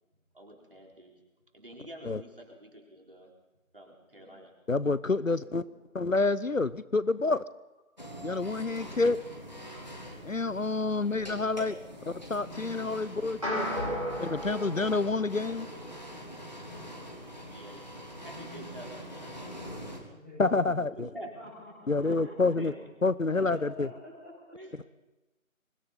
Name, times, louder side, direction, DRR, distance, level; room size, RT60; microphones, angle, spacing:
voice 1, 0.3-1.2 1.5-3.3 3.7-4.5 17.5-19.7 20.9-21.4 22.1-22.9 24.5-24.9, equal, 40° right, 1 dB, 4.2 m, -47 dB
voice 2, 4.1-4.4 5.2-5.6 20.1-20.9 21.3-24.6, left 1 dB, 10° left, -9 dB, 6.9 m, -49 dB
voice 3, 4.7-5.6 5.9-7.4 8.2-9.2 10.2-11.8 12.1-13.7 14.2-15.7 20.4-21.1 21.9-22.7 23.0-23.9 24.7-24.9, left 3 dB, 70° left, 17 dB, 0.9 m, -28 dB
sound 1, 8.0-20.0, equal, 30° left, 3.3 m, -44 dB
sound 2, 13.4-15.9, equal, 25° right, 7.9 m, -34 dB
25.5 x 24.5 x 4.2 m, 1.0 s
figure-of-eight pair, 180°, 42 cm